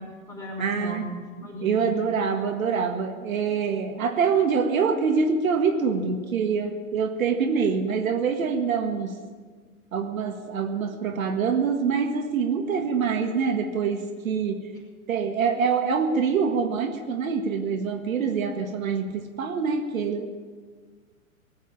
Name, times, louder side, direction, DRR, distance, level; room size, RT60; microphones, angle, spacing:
voice 1, 0.0-1.9, equal, 10° left, -3 dB, 5.0 m, -36 dB
voice 2, 0.6-1.1 1.6-9.2 9.9-14.7 15.1-20.3, right 5 dB, 70° right, 5 dB, 1.7 m, -25 dB
18.5 x 8.5 x 8.6 m, 1.5 s
hypercardioid pair, 125°, 42 cm